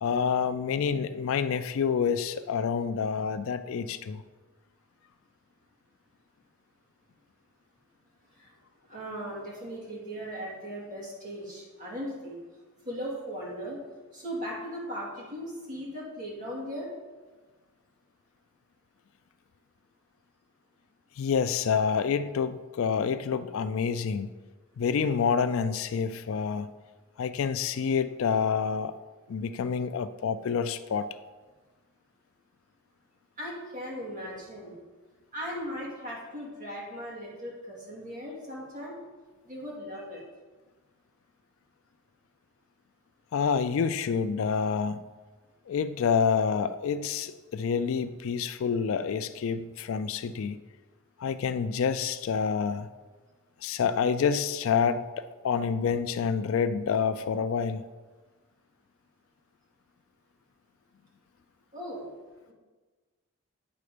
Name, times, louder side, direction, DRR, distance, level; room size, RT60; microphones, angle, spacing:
voice 1, 0.0-4.2 21.2-24.3 24.8-26.7 27.2-28.9 29.3-31.1 43.3-45.0 45.7-50.6 51.2-52.9 53.6-57.8, left 6 dB, 65° left, 12 dB, 0.3 m, -28 dB
voice 2, 8.9-12.4 12.8-13.8 14.1-16.9 33.4-34.8 35.3-39.0 39.5-40.2 61.7-62.1, equal, 35° right, -5 dB, 2.4 m, -38 dB
9.7 x 4.3 x 5.0 m, 1.3 s
head